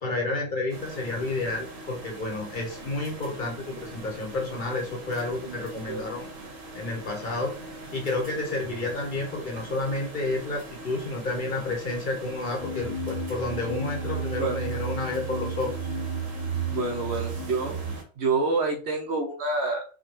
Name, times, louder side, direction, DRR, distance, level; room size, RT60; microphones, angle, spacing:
voice 1, 0.0-6.3 6.7-7.5 7.9-15.7, left 2 dB, 45° left, 0 dB, 0.9 m, -30 dB
sound 1, 0.7-18.0, right 2 dB, 80° right, 1.3 m, -42 dB
sound 2, 12.6-18.0, right 4 dB, 85° left, 1.2 m, -32 dB
voice 2, 16.7-17.8 18.2-19.8, right 3 dB, 60° right, 0 dB, 0.9 m, -27 dB
4.8 x 2.3 x 3.1 m, 0.41 s
omnidirectional pair, 1.3 m